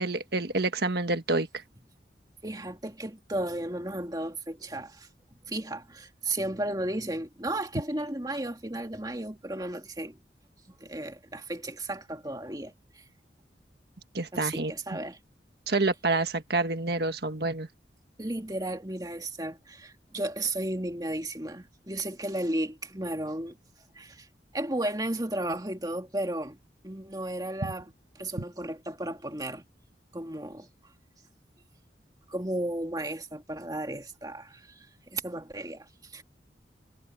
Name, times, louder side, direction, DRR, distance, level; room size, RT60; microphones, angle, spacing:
voice 1, 0.0-1.5 14.1-14.7 15.7-17.7, right 3 dB, 65° right, 1.5 m, -28 dB
voice 2, 2.4-5.1 5.5-10.2 10.8-13.0 14.3-15.2 18.2-23.6 23.9-24.3 24.5-26.6 26.8-29.6 30.1-30.7 32.3-36.2, right 1 dB, 20° right, 2.2 m, -34 dB
head